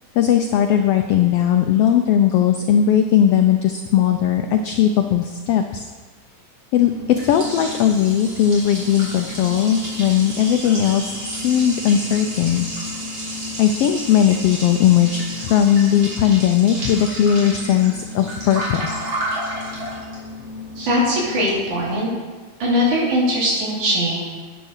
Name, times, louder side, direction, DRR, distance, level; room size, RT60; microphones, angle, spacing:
voice 1, 0.1-5.8 6.7-12.7 13.6-19.0, left 9 dB, 80° left, 6 dB, 1.3 m, -18 dB
Liquid, 6.8-21.9, equal, 40° right, 3.7 m, -31 dB
voice 2, 20.8-22.1 22.6-24.2, equal, 75° right, -5 dB, 4.5 m, -20 dB
10.0 x 9.1 x 6.5 m, 1.4 s
omnidirectional pair, 3.4 m